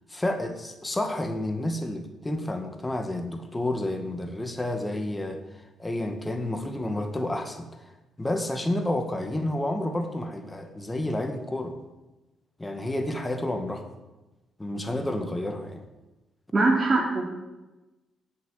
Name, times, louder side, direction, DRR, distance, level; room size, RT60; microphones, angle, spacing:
voice 1, 0.1-7.9 8.2-11.8 12.6-13.9 14.6-15.8, left 1 dB, 15° left, 5 dB, 2.0 m, -30 dB
voice 2, 16.5-17.2, right 3 dB, 30° right, -3 dB, 3.1 m, -22 dB
15.5 x 8.6 x 9.1 m, 1.1 s
cardioid pair, 90°, 0 cm